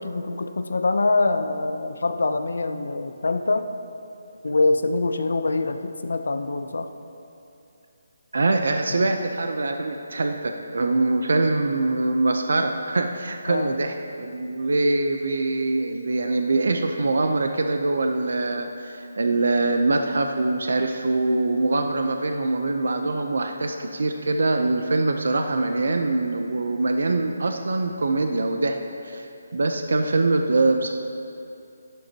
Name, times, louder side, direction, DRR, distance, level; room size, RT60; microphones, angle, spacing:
voice 1, 0.0-3.6 4.4-6.9 9.0-9.1 13.5-13.7, left 3 dB, 80° left, 8 dB, 0.7 m, -24 dB
voice 2, 8.3-28.8 29.0-29.3 29.5-30.9, right 2 dB, 65° right, 5 dB, 0.7 m, -23 dB
13.5 x 11.5 x 2.9 m, 2.7 s
hypercardioid pair, 175°, 0 cm